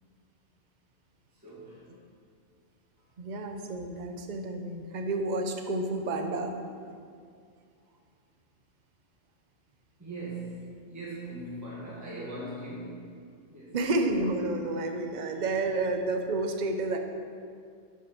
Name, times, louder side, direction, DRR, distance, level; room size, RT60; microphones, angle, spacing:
voice 1, 1.3-2.0 3.0-3.1 10.0-13.1 13.5-13.7, right 2 dB, 15° right, -7 dB, 1.7 m, -40 dB
voice 2, 3.2-6.5 6.9-7.0 13.7-17.0, right 2 dB, 45° right, 5 dB, 0.8 m, -30 dB
10.0 x 5.2 x 6.0 m, 2.2 s
omnidirectional pair, 1.3 m